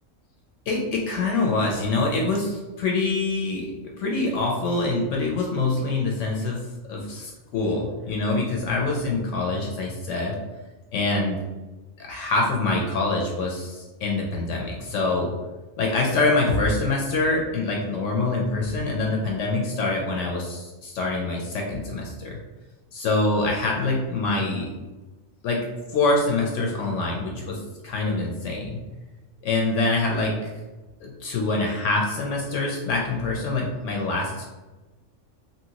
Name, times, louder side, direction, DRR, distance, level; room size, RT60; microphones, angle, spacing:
voice 1, 0.7-3.7 4.0-6.6 6.9-10.4 10.9-11.4 12.0-15.3 15.8-22.4 22.9-24.7 25.4-25.6 25.9-28.8 29.4-30.3 31.0-34.5, left 3 dB, 70° left, -1 dB, 0.8 m, -25 dB
2.9 x 2.7 x 2.8 m, 1.2 s
omnidirectional pair, 1.4 m